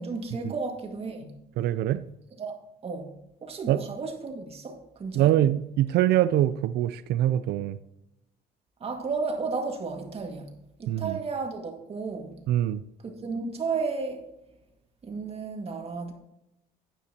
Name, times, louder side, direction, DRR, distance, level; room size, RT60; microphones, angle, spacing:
voice 1, 0.0-1.3 2.4-2.6 2.8-3.1 3.4-5.3 8.8-10.5 10.8-12.4 13.0-14.2 15.0-16.1, right 4 dB, 35° right, 2.0 m, -33 dB
voice 2, 1.6-2.0 3.7-3.8 5.1-7.8 10.9-11.2 12.5-12.8, right 12 dB, 75° right, 0.5 m, -24 dB
9.9 x 9.5 x 2.9 m
cardioid pair, 110°, 17 cm